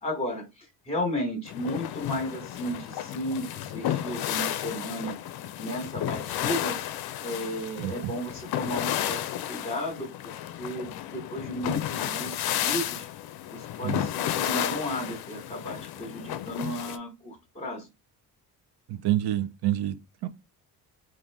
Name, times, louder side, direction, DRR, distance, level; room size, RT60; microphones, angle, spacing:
voice 1, 0.0-5.2 5.5-6.8 7.2-10.3 10.6-13.1 13.5-17.9, equal, 20° left, 1.2 m, -34 dB
sound 1, 1.5-17.0, left 12 dB, 65° left, 0.5 m, -32 dB
voice 2, 18.9-19.9 20.2-20.3, right 13 dB, 70° right, 0.7 m, -27 dB
4.0 x 2.6 x 3.4 m
cardioid pair, 115°, 41 cm